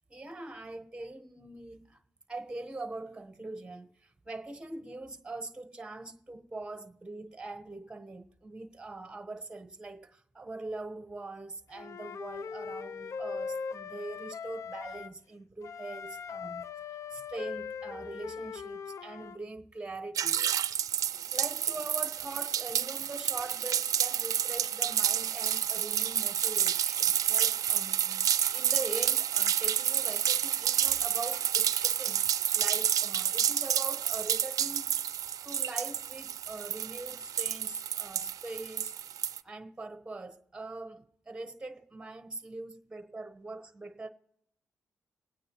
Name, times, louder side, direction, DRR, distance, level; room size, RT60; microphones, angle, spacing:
voice 1, 0.1-2.0 2.3-16.6 17.1-20.5 21.3-35.0 35.4-39.2 39.4-44.1, right 2 dB, 15° right, 1.1 m, -42 dB
Wind instrument woodwind instrument, 11.7-15.1 15.6-19.4, left 6 dB, 55° left, 0.4 m, -40 dB
sound 1, 20.2-39.4, right 10 dB, 70° right, 0.4 m, -29 dB
21.0 x 9.0 x 3.0 m
cardioid pair, 60°, 6 cm